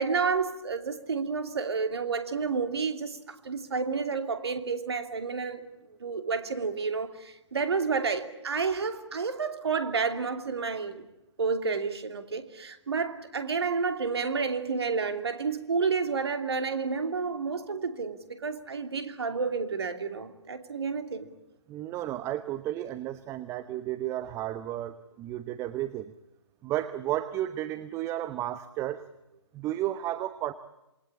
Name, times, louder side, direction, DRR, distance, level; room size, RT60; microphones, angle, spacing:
voice 1, 0.0-5.6 6.0-11.0 11.4-21.3, right 5 dB, 65° right, 8 dB, 2.7 m, -30 dB
voice 2, 21.7-26.1 26.6-29.1 29.5-30.5, right 13 dB, 20° right, 13 dB, 0.9 m, -33 dB
27.5 x 21.5 x 8.6 m, 0.93 s
figure-of-eight pair, 125°, 15 cm